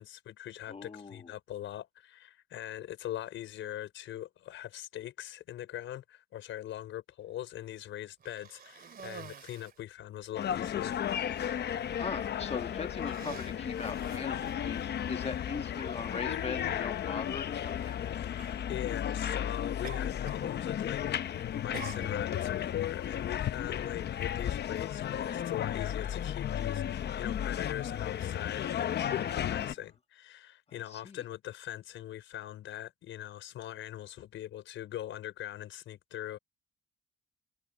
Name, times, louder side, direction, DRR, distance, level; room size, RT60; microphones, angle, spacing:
voice 1, 0.0-11.0 18.2-36.4, left 12 dB, 80° left, 5.5 m, -41 dB
voice 2, 0.7-1.3 12.0-17.9 29.1-29.7 30.7-31.2, left 5 dB, 30° left, 1.7 m, -40 dB
Cough, 8.2-9.8 10.6-10.7 11.0-11.5 12.3-12.5 12.9-14.9 15.8-15.9 17.7-18.0 18.4-18.6 19.8-20.5 20.8-21.2 21.7-22.5, right 7 dB, 50° right, 2.4 m, -48 dB
sound 1, 10.3-29.7, left 10 dB, 55° left, 0.9 m, -34 dB
cardioid pair, 90°, 20 cm